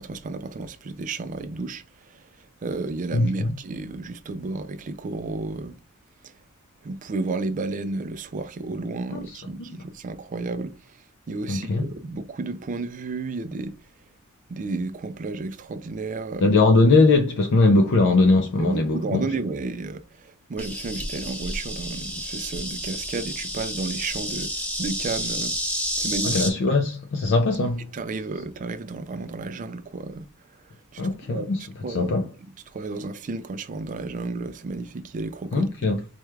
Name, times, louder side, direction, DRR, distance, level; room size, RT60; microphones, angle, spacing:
voice 1, 0.0-1.8 2.1-2.2 2.6-5.8 6.8-10.7 11.3-13.8 14.5-16.6 18.6-24.5 24.8-25.6 26.0-26.5 27.9-30.3 30.9-31.5 31.8-32.1 32.7-36.0, right 3 dB, 35° right, 0.4 m, -32 dB
voice 2, 3.1-3.5 9.1-9.4 9.7-9.8 11.5-11.9 16.4-19.3 26.2-27.9 31.0-32.3 35.5-36.0, left 3 dB, 55° left, 0.5 m, -20 dB
Insect, 20.6-26.5, equal, 5° left, 0.8 m, -30 dB
4.4 x 2.3 x 3.2 m
head